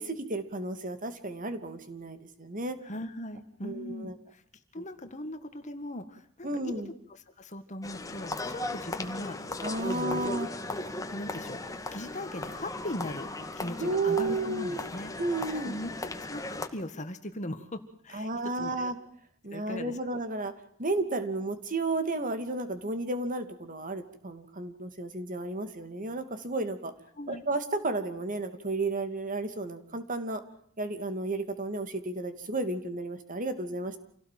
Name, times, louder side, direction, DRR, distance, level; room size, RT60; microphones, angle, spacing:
voice 1, 0.0-2.8 3.6-4.1 4.8-4.9 6.4-6.9 9.6-10.5 13.8-14.8 15.2-15.7 18.1-18.9 19.4-20.5 20.8-26.9 27.3-30.4 30.8-34.0, right 2 dB, 40° right, 9 dB, 2.6 m, -32 dB
voice 2, 2.8-4.4 4.7-6.8 7.1-10.2 11.1-11.6 11.9-15.1 15.6-15.9 16.3-18.3 18.6-18.9 19.5-20.1 27.2-27.4, left 1 dB, 35° left, 8 dB, 1.8 m, -39 dB
sound 1, 7.8-16.7, left 2 dB, 15° left, 2.1 m, -37 dB
28.0 x 17.5 x 7.7 m, 0.67 s
head